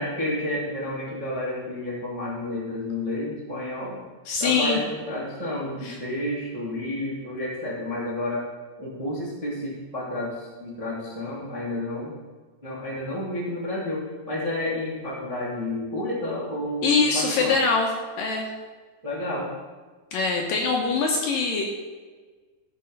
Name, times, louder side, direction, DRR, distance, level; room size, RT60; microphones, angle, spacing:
voice 1, 0.0-4.0 4.4-8.4 8.8-12.1 12.6-17.5 19.0-19.5, left 1 dB, 15° right, -5 dB, 1.1 m, -30 dB
voice 2, 4.3-4.8 5.8-6.0 16.8-17.9 18.2-18.5 20.1-21.6, left 4 dB, 70° left, 1 dB, 2.3 m, -23 dB
13.5 x 5.4 x 5.4 m, 1.4 s
omnidirectional pair, 4.8 m